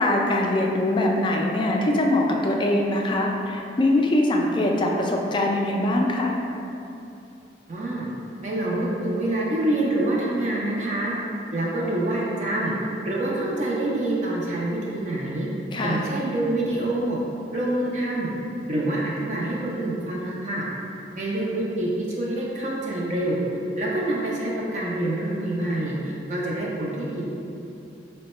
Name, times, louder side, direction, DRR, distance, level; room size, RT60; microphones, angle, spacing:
voice 1, 0.0-6.3 15.7-16.1, left 1 dB, 25° left, 0 dB, 0.3 m, -22 dB
voice 2, 7.7-8.1 8.4-11.1 11.5-12.7 13.0-15.5 15.8-17.2 17.5-18.3 18.7-20.7 21.2-23.4 23.8-27.2, right 1 dB, 40° right, -5 dB, 0.5 m, -26 dB
3.6 x 2.2 x 4.1 m, 2.8 s
head